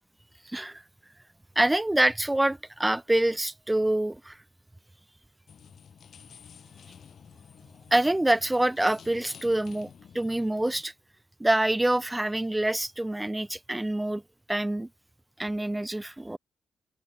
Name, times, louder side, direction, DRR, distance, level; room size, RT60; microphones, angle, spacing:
voice 1, 0.4-0.8 1.5-4.4 7.9-10.9 11.4-14.2 14.5-14.9 15.4-16.4, right 1 dB, 10° right, 4.5 m, -26 dB
sound 1, 5.5-10.8, left 7 dB, 60° left, 6.1 m, -51 dB
open air
cardioid pair, 70°, 0 cm